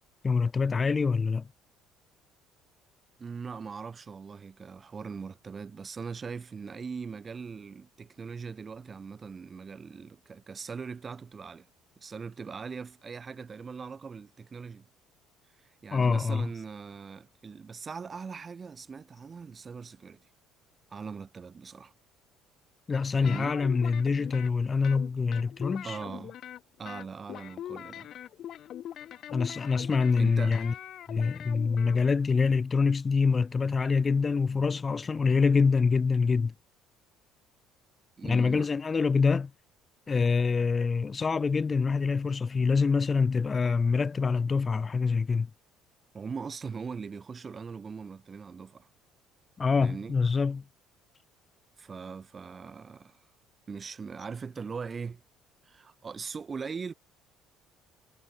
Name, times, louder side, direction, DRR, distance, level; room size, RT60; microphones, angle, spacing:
voice 1, 0.2-1.5 15.9-16.5 22.9-26.0 29.3-30.7 31.1-36.5 38.2-39.5 40.1-45.5 49.6-50.6, left 5 dB, 30° left, 1.7 m, -25 dB
voice 2, 3.2-11.7 12.0-14.9 15.8-20.2 20.9-21.9 23.2-23.5 25.8-26.3 26.8-28.1 30.2-30.6 38.2-38.7 46.1-48.9 49.8-50.2 51.8-53.2 53.7-55.2 55.6-56.9, right 5 dB, 35° right, 4.2 m, -40 dB
sound 1, 23.2-24.5 24.8-26.6 26.9-32.0, left 11 dB, 55° left, 0.8 m, -42 dB
hypercardioid pair, 65°, 0 cm